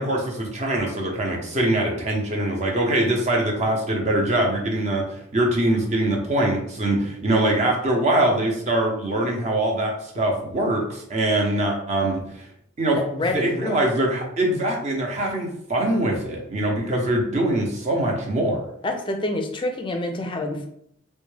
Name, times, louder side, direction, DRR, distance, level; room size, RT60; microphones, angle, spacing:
voice 1, 0.0-12.4 12.8-13.0 13.3-18.6, right 1 dB, 35° right, 0 dB, 0.7 m, -23 dB
voice 2, 12.9-13.8 18.8-20.7, left 1 dB, 25° left, 5 dB, 0.4 m, -27 dB
4.0 x 2.2 x 3.2 m, 0.71 s
head